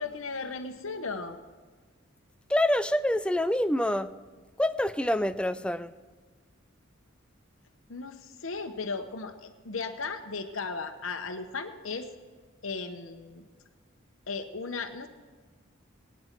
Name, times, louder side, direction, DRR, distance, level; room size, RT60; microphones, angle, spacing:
voice 1, 0.0-1.4 7.9-12.1 12.6-13.4 14.3-15.1, left 4 dB, 80° left, 5 dB, 1.0 m, -36 dB
voice 2, 2.5-4.1 4.6-5.9, left 1 dB, 5° left, 12 dB, 0.4 m, -26 dB
23.5 x 9.6 x 4.5 m, 1.5 s
head